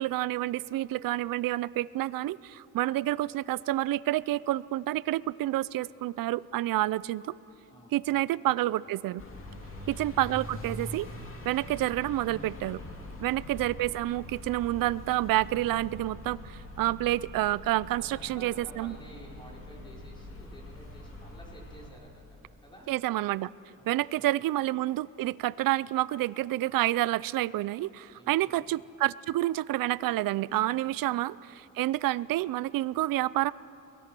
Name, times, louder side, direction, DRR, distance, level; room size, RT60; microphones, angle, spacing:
voice 1, 0.0-7.3 7.9-9.2 9.9-11.1 11.5-12.8 13.2-18.9 22.9-23.5 23.9-33.5, right 15 dB, 90° right, 20 dB, 0.5 m, -29 dB
voice 2, 7.7-8.3 9.5-9.9 12.9-13.3 18.0-22.9 23.7-23.9 24.2-24.3 28.1-28.6, equal, 15° left, -3 dB, 4.2 m, -51 dB
sound 1, 9.2-21.9, left 1 dB, 40° left, 2.7 m, -44 dB
23.5 x 20.0 x 6.1 m, 2.8 s
wide cardioid pair, 145°, 33 cm